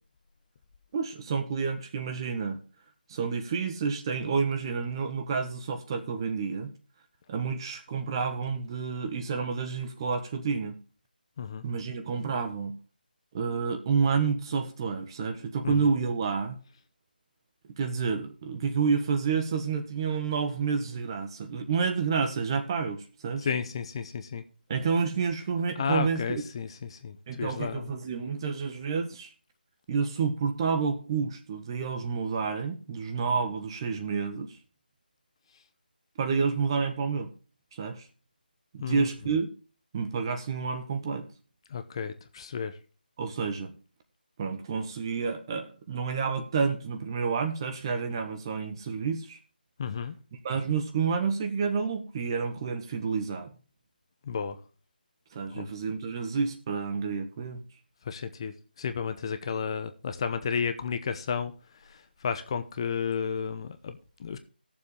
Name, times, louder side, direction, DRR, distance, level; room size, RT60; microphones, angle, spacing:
voice 1, 0.9-2.6 3.1-6.7 7.3-10.7 11.6-12.7 13.3-16.6 17.8-23.5 24.7-26.4 27.3-29.3 29.9-34.5 36.2-37.3 37.7-38.0 38.7-39.5 39.9-41.2 43.2-43.7 44.4-49.4 50.4-53.5 55.3-57.6, right 5 dB, 25° right, 1.3 m, -29 dB
voice 2, 23.4-24.4 25.8-27.9 38.8-39.3 41.7-42.8 49.8-50.2 54.2-54.6 55.5-55.7 58.0-61.5 61.8-64.4, left 6 dB, 30° left, 0.8 m, -33 dB
15.5 x 7.2 x 3.3 m
figure-of-eight pair, 160°, 5 cm